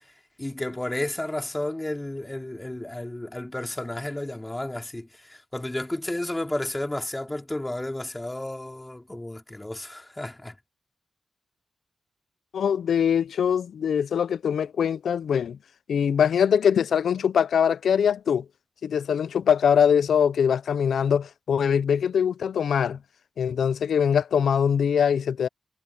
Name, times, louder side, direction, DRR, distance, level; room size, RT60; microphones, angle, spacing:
voice 1, 0.4-10.5, left 1 dB, 15° left, 3.6 m, -32 dB
voice 2, 12.5-15.6 15.9-18.4 18.8-23.0 23.4-25.5, left 7 dB, 80° left, 0.6 m, -22 dB
cardioid pair, 50°, 0 cm